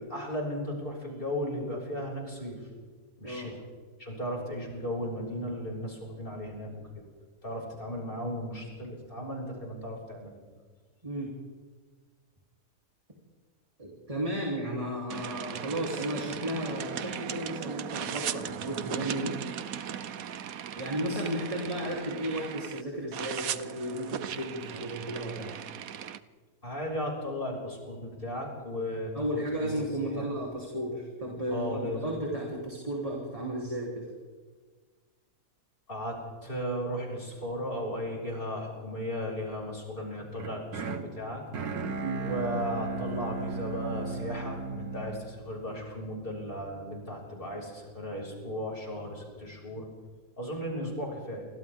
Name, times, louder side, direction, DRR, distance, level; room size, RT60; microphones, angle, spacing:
voice 1, 0.0-2.6 3.2-3.5 4.0-6.7 7.4-10.3 26.6-29.7 30.1-30.3 31.5-32.1 35.9-41.4 42.2-49.9 50.4-51.5, equal, 35° left, -2 dB, 6.8 m, -35 dB
voice 2, 3.2-3.6 11.0-11.4 13.8-19.4 20.8-25.5 29.1-34.1 42.0-42.3, right 1 dB, 25° right, -2 dB, 3.8 m, -34 dB
sound 1, 15.1-22.8 23.1-26.2, right 9 dB, 75° right, 1.3 m, -37 dB
sound 2, 40.3-46.5, right 4 dB, 90° right, 1.8 m, -36 dB
28.5 x 25.5 x 3.7 m, 1.5 s
omnidirectional pair, 1.5 m